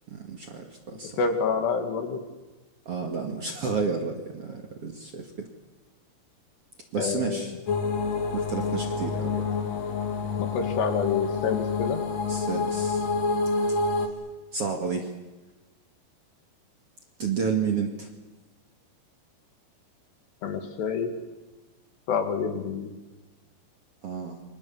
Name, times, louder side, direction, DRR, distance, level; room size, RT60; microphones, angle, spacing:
voice 1, 0.1-1.2 2.9-5.5 6.9-7.5 8.3-9.6 12.2-13.1 14.5-15.1 17.2-18.1 24.0-24.4, right 5 dB, 45° right, 3 dB, 2.2 m, -31 dB
voice 2, 0.9-2.2 7.0-7.5 10.4-12.0 20.4-21.1 22.1-22.9, left 5 dB, 75° left, 6 dB, 4.4 m, -28 dB
sound 1, 7.7-14.1, left 4 dB, 50° left, 2.6 m, -28 dB
28.0 x 25.0 x 7.4 m, 1.2 s
omnidirectional pair, 5.0 m